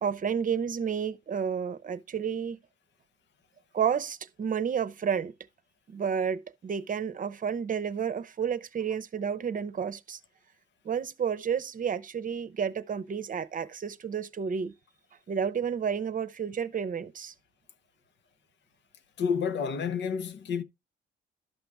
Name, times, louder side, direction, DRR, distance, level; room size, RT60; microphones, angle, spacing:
voice 1, 0.0-2.6 3.7-5.3 5.9-10.2 10.8-14.7 15.3-17.3, right 7 dB, 45° right, 0.8 m, -31 dB
voice 2, 19.2-20.6, left 6 dB, 65° left, 0.9 m, -29 dB
12.0 x 6.0 x 3.4 m
cardioid pair, 90°, 20 cm